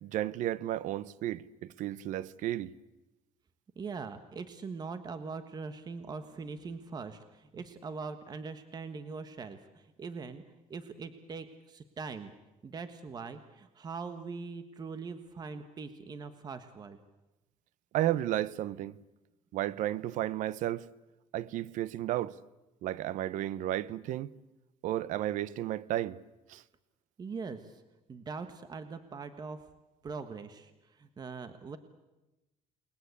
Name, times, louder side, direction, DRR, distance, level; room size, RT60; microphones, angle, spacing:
voice 1, 0.0-2.7 17.9-19.0 19.5-20.9 21.3-22.4 22.8-24.3 24.8-26.2 26.5-26.6, right 13 dB, 70° right, 0.9 m, -33 dB
voice 2, 3.7-10.4 10.7-12.3 12.6-17.0 27.2-27.8 28.1-29.6 30.0-31.8, right 4 dB, 30° right, 1.4 m, -42 dB
29.0 x 20.5 x 8.4 m
cardioid pair, 135°, 13 cm